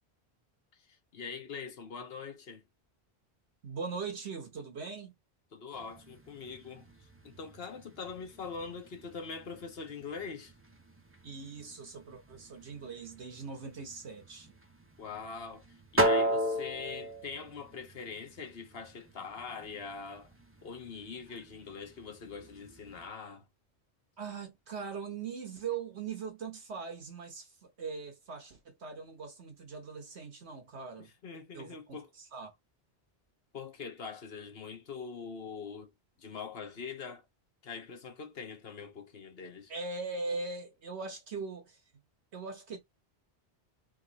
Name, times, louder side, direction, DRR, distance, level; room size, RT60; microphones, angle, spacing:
voice 1, 0.7-2.6 5.5-10.5 15.0-20.3 20.6-23.4 31.0-32.1 33.5-35.9 36.2-37.3 37.6-39.7, left 5 dB, 60° left, 1.2 m, -43 dB
voice 2, 3.6-5.1 11.2-14.5 21.3-21.4 24.2-31.1 31.5-32.0 32.3-32.5 39.7-41.8 42.3-42.8, right 4 dB, 75° right, 1.4 m, -40 dB
sound 1, 5.7-23.1, right 1 dB, 15° right, 0.7 m, -38 dB
3.8 x 2.9 x 3.9 m
omnidirectional pair, 1.1 m